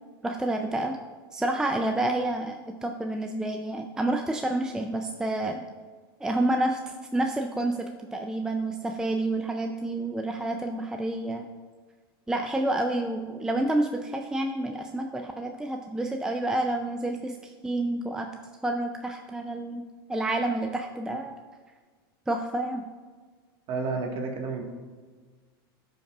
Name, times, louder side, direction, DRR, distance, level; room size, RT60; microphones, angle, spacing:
voice 1, 0.2-1.0 1.3-5.6 6.2-11.5 12.3-18.3 18.6-19.8 20.1-21.3 22.3-22.8, right 1 dB, 5° right, 3 dB, 0.4 m, -29 dB
voice 2, 23.7-24.6, right 4 dB, 45° right, 2 dB, 1.5 m, -30 dB
13.0 x 5.4 x 2.4 m, 1.4 s
supercardioid pair, 115°, 13 cm